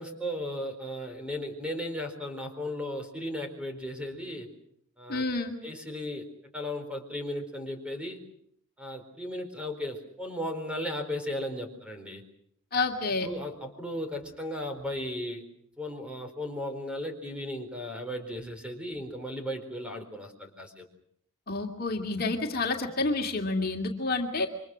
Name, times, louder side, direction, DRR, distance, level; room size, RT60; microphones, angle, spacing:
voice 1, 0.0-4.5 5.0-5.2 5.6-6.3 6.5-8.2 8.8-12.2 13.2-15.4 15.8-20.8, left 1 dB, 5° right, 5 dB, 4.3 m, -36 dB
voice 2, 5.1-5.5 12.7-13.3 21.5-24.5, left 3 dB, 45° left, 2 dB, 2.5 m, -29 dB
28.5 x 25.0 x 6.3 m, 0.68 s
head